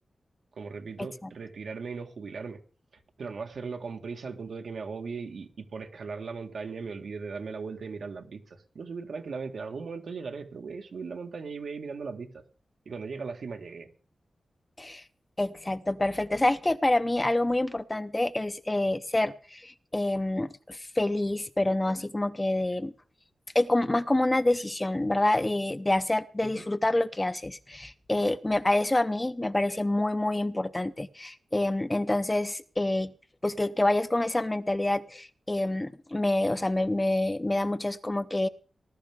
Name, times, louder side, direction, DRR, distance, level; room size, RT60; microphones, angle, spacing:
voice 1, 0.6-2.6 3.2-12.4 12.9-13.9 26.4-26.6, right 5 dB, 75° right, 1.7 m, -38 dB
voice 2, 15.4-22.9 23.5-33.1 33.4-38.5, left 1 dB, 15° left, 0.6 m, -27 dB
19.5 x 12.5 x 3.6 m
wide cardioid pair, 145°, 0 cm